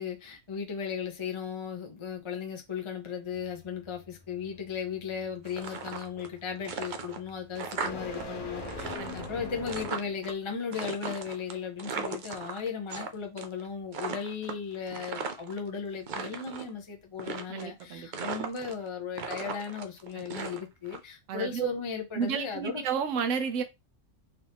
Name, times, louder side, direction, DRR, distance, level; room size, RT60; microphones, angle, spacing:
voice 1, 0.0-22.8, left 6 dB, 30° left, 0.7 m, -36 dB
sound 1, 3.3-10.3, left 3 dB, 65° left, 1.5 m, -43 dB
sound 2, 5.4-6.3 6.6-8.2 8.5-10.3 10.7-13.1 13.4-13.7 13.9-15.6 16.0-16.7 17.2-17.8 18.1-18.9 19.1-21.0, right 5 dB, 50° right, 0.6 m, -37 dB
voice 2, 17.5-18.3 20.1-20.2 21.3-21.7 22.1-23.6, right 6 dB, 70° right, 1.1 m, -32 dB
4.3 x 2.7 x 3.5 m
omnidirectional pair, 1.4 m